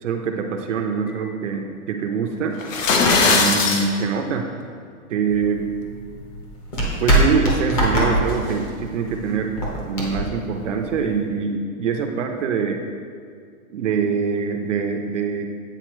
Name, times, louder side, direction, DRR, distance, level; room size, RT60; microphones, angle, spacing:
voice 1, 0.0-2.6 3.2-4.5 5.1-5.7 7.0-12.8 13.7-15.5, right 6 dB, 55° right, 4 dB, 0.7 m, -24 dB
sound 1, 2.6-3.9, left 4 dB, 60° left, 0.9 m, -18 dB
sound 2, 5.2-11.2, right 1 dB, 25° left, 0.9 m, -23 dB
9.0 x 4.1 x 3.1 m, 2.2 s
hypercardioid pair, 160°, 43 cm